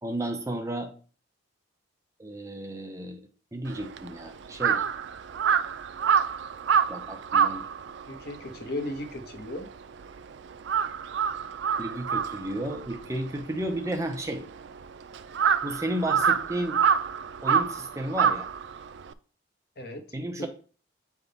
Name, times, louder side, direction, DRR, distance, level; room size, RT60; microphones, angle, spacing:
voice 1, 0.0-0.9 2.2-3.2 3.5-4.8 6.9-7.7 11.8-14.4 15.6-16.8 17.4-18.5 20.1-20.5, right 1 dB, 15° right, 5 dB, 0.6 m, -32 dB
Crow, 3.7-10.2 10.5-19.1, right 7 dB, 65° right, 0.4 m, -27 dB
voice 2, 8.1-9.7 19.8-20.0 20.4-20.5, left 1 dB, 55° left, 4 dB, 1.0 m, -36 dB
8.0 x 3.6 x 3.9 m, 0.40 s
head